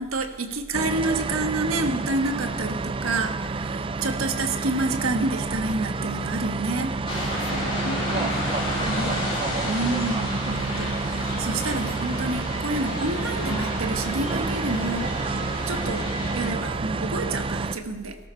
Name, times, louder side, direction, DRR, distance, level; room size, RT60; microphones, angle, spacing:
voice 1, 0.0-6.9 8.8-9.2 9.6-15.4 15.7-18.2, right 2 dB, 80° right, 6 dB, 1.3 m, -29 dB
sound 1, 0.7-17.8, right 3 dB, 25° right, 0.4 m, -29 dB
sound 2, 7.1-16.5, left 1 dB, 25° left, 4.4 m, -32 dB
voice 2, 7.4-10.2, left 1 dB, 85° left, 5 dB, 1.3 m, -39 dB
18.5 x 13.0 x 4.4 m, 1.3 s
head